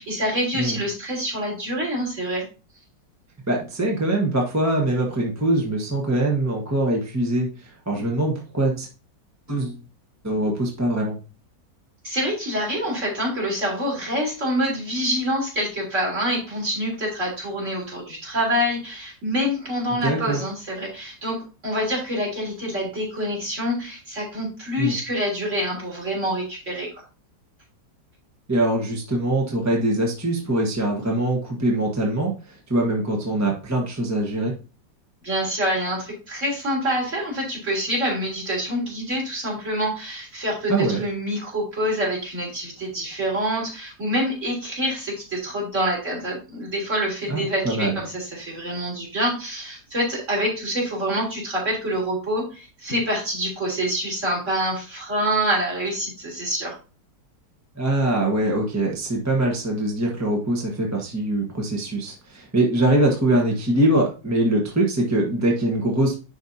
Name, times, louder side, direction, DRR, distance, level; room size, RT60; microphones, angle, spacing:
voice 1, 0.0-2.4 12.0-27.0 35.2-56.8, equal, 45° right, -3 dB, 3.8 m, -26 dB
voice 2, 3.5-8.9 9.5-9.8 10.2-11.2 20.0-20.4 24.8-24.9 28.5-34.5 40.7-41.0 47.3-48.0 57.7-66.2, right 1 dB, 10° right, -1 dB, 1.2 m, -23 dB
10.5 x 4.6 x 2.8 m, 0.33 s
omnidirectional pair, 1.9 m